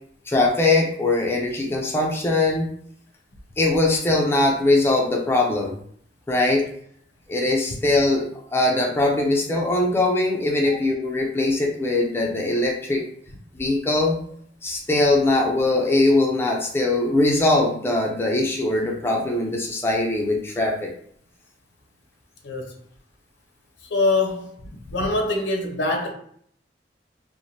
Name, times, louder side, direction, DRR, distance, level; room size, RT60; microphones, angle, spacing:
voice 1, 0.3-2.7 3.6-5.8 6.3-6.6 7.3-8.3 8.5-13.0 13.5-14.2 14.6-20.9, left 2 dB, 15° left, -1 dB, 0.4 m, -21 dB
voice 2, 23.9-24.6 24.9-26.1, left 2 dB, 80° left, 2 dB, 0.6 m, -23 dB
3.0 x 2.1 x 2.7 m, 0.62 s
head